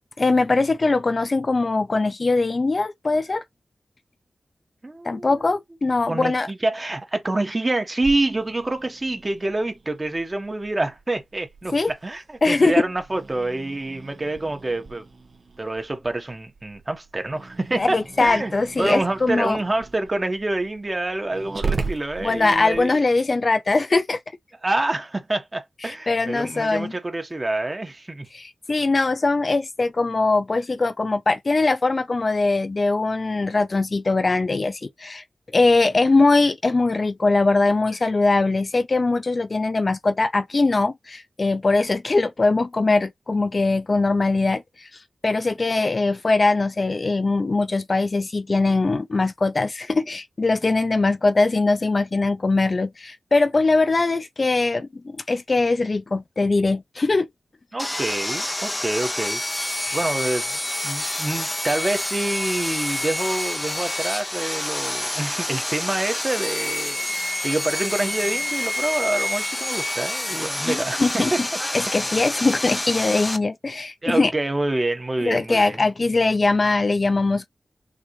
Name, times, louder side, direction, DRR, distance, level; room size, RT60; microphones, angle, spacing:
voice 1, 0.2-3.4 5.0-6.5 11.7-11.9 12.4-12.7 17.8-19.6 22.2-24.2 25.9-26.9 28.3-35.2 35.5-44.9 45.2-57.3 59.8-60.0 70.7-71.3 71.7-74.3 75.2-77.5, left 3 dB, 45° left, 0.5 m, -21 dB
voice 2, 4.8-5.6 6.1-15.0 15.6-18.5 18.8-23.0 24.6-28.3 57.7-59.4 59.9-71.4 71.9-72.0 74.0-75.9, right 2 dB, 30° right, 1.4 m, -27 dB
Growling, 8.0-22.8, right 4 dB, 60° right, 1.3 m, -38 dB
Sawing, 57.8-73.4, left 1 dB, 20° left, 0.8 m, -28 dB
6.3 x 2.5 x 3.2 m
wide cardioid pair, 70°, 0 cm